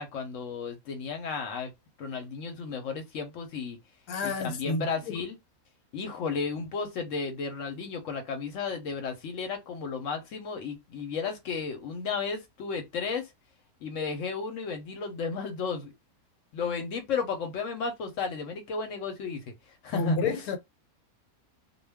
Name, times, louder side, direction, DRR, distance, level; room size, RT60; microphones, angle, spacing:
voice 1, 0.0-1.7 2.0-3.8 4.2-5.4 5.9-13.3 13.8-15.9 16.5-19.5 19.8-20.4, left 5 dB, 65° left, 0.9 m, -33 dB
voice 2, 4.1-5.2 19.9-20.6, left 3 dB, 85° left, 1.1 m, -30 dB
2.2 x 2.2 x 3.3 m
omnidirectional pair, 1.6 m